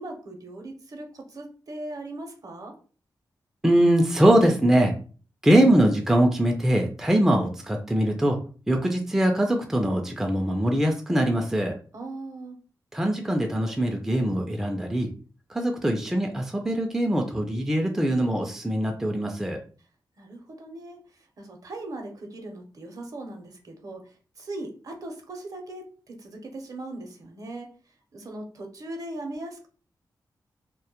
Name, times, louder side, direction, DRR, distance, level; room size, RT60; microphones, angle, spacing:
voice 1, 0.0-2.7 11.9-12.6 20.2-27.7 28.1-29.7, right 2 dB, 50° right, 3 dB, 0.6 m, -39 dB
voice 2, 3.6-4.9 5.4-8.4 8.7-11.7 12.9-15.1 15.5-19.6, right 1 dB, 5° right, 2 dB, 0.3 m, -22 dB
2.1 x 2.1 x 2.8 m, 0.39 s
wide cardioid pair, 110°, 8 cm